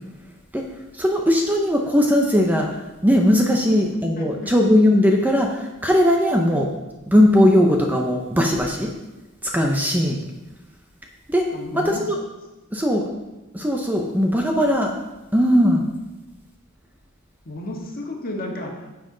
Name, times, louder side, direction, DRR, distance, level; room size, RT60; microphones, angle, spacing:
voice 1, 0.9-2.7 3.0-6.7 7.1-8.9 9.4-10.2 11.3-11.4 11.7-12.2 12.7-13.0 13.5-14.9 15.3-15.8, equal, 10° right, 1 dB, 0.7 m, -18 dB
voice 2, 4.2-4.5 11.5-12.0 17.5-19.0, left 1 dB, 40° left, 0 dB, 1.6 m, -33 dB
10.0 x 7.6 x 3.9 m, 1.1 s
head